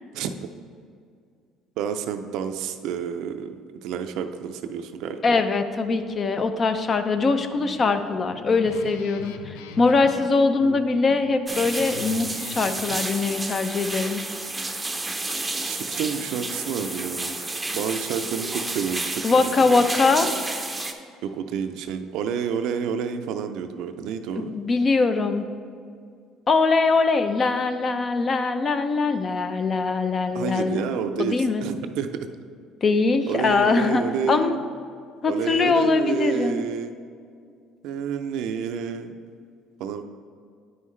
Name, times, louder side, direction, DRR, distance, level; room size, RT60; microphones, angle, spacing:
voice 1, 1.8-3.6 3.8-5.4 15.6-17.3 17.7-19.8 21.2-24.5 30.3-32.2 33.3-34.6 35.2-36.9 37.8-39.1 39.8-40.0, right 7 dB, 75° right, 8 dB, 0.4 m, -29 dB
voice 2, 5.2-14.2 19.2-20.3 24.4-25.4 26.5-30.9 31.2-31.6 32.8-34.6 35.2-36.6, left 4 dB, 35° left, 9 dB, 0.6 m, -22 dB
Guitar, 7.2-13.0, left 6 dB, 85° left, 0.4 m, -41 dB
sound 1, 11.5-20.9, right 2 dB, 15° right, 0.6 m, -31 dB
9.4 x 5.5 x 3.2 m, 2.2 s
supercardioid pair, 90°, 0 cm